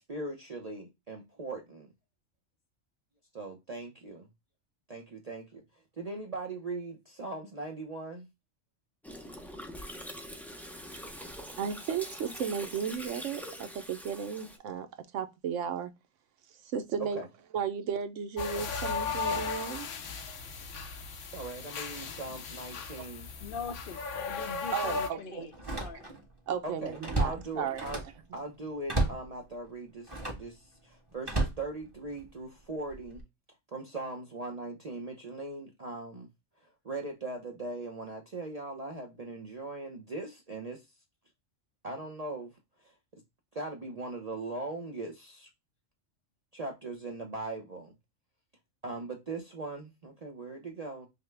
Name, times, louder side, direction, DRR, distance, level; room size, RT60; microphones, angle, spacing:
voice 1, 0.0-1.9 3.3-4.3 4.9-5.6 6.0-8.3 17.1-17.2 21.3-23.3 26.6-28.0 28.3-33.2 33.7-36.3 36.6-40.8 41.8-42.5 42.8-43.2 43.5-45.5 46.5-47.9 48.8-51.1, right 2 dB, 40° right, 0.7 m, -40 dB
Gurgling, 9.0-14.6, equal, ahead, 0.4 m, -44 dB
voice 2, 11.6-14.9 15.1-15.9 16.5-17.3 17.5-19.9 23.0-23.1 24.7-25.5 26.5-27.9, right 7 dB, 80° right, 1.0 m, -34 dB
sound 1, 18.4-25.1, left 5 dB, 80° left, 1.1 m, -36 dB
voice 3, 23.4-25.5 25.8-26.1, left 5 dB, 55° left, 0.7 m, -41 dB
Slam, 23.4-23.6 24.1-24.2 25.5-26.3 26.7-28.2 28.9-29.3 30.0-30.5 31.2-32.3 32.9-33.2, right 2 dB, 20° right, 1.1 m, -33 dB
5.6 x 2.1 x 3.2 m
omnidirectional pair, 1.3 m